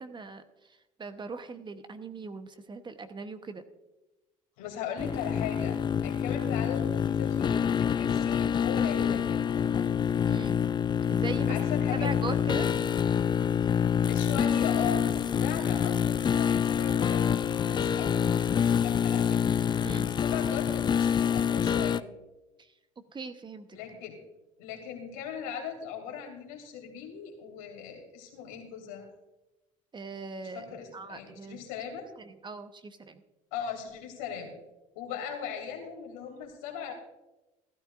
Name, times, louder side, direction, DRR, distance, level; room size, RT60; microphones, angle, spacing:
voice 1, 0.0-3.6 10.3-10.6 11.1-11.7 12.0-12.7 19.8-20.1 22.6-22.7 23.1-23.8 29.9-30.6 30.9-31.6 32.2-33.2, right 4 dB, 25° right, 9 dB, 1.0 m, -40 dB
voice 2, 4.6-9.9 11.5-12.1 14.1-22.1 23.7-24.2 24.6-29.1 30.5-32.1 33.5-34.5 34.9-36.9, left 7 dB, 80° left, 2 dB, 2.8 m, -39 dB
sound 1, 5.0-22.0, left 8 dB, 25° left, 0.4 m, -26 dB
15.0 x 13.0 x 2.5 m, 1.0 s
hypercardioid pair, 65°, 17 cm